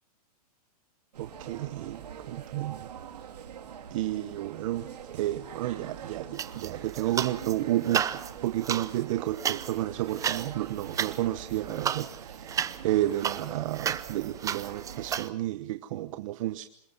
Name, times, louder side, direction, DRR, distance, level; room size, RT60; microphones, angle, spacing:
sound 1, 1.1-15.2, right 8 dB, 80° right, 3.0 m, -44 dB
voice 1, 1.2-2.9 3.9-8.1 8.4-16.7, right 14 dB, 55° right, 9 dB, 1.1 m, -31 dB
sound 2, 6.4-7.5 7.8-15.3, right 8 dB, 15° right, 0.8 m, -33 dB
26.5 x 21.0 x 5.7 m, 0.71 s
hypercardioid pair, 130°, 20 cm